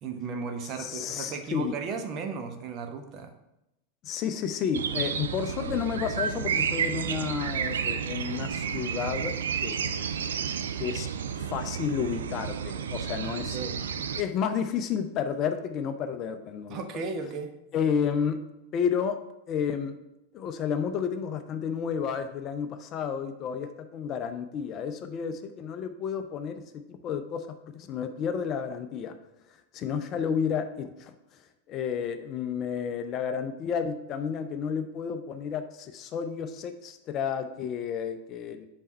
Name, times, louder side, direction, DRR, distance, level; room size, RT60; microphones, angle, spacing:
voice 1, 0.0-3.3 13.5-13.8 16.7-17.6, right 4 dB, 35° right, 6 dB, 0.9 m, -35 dB
voice 2, 0.8-1.7 4.0-9.4 9.6-10.1 10.8-11.1 11.4-13.6 14.2-16.8 17.7-18.4 18.7-19.2 19.5-20.0 20.3-29.1 29.7-31.1 31.7-38.7, left 7 dB, 35° left, 8 dB, 0.5 m, -31 dB
sound 1, 4.7-14.2, right 7 dB, 65° right, 0.4 m, -31 dB
5.5 x 4.4 x 6.2 m, 0.90 s
figure-of-eight pair, 90°, 0 cm